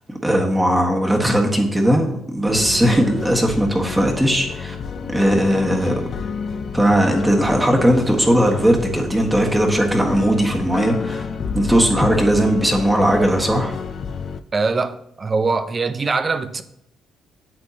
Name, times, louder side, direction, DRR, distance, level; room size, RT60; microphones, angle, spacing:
voice 1, 0.2-4.8 5.1-6.0 6.7-11.2 11.5-13.7, equal, 10° right, 1.5 m, -18 dB
sound 1, 2.5-14.4, left 5 dB, 50° left, 0.5 m, -30 dB
voice 2, 14.5-16.6, right 4 dB, 35° right, 0.6 m, -22 dB
8.9 x 6.5 x 2.8 m
cardioid pair, 90°, 0 cm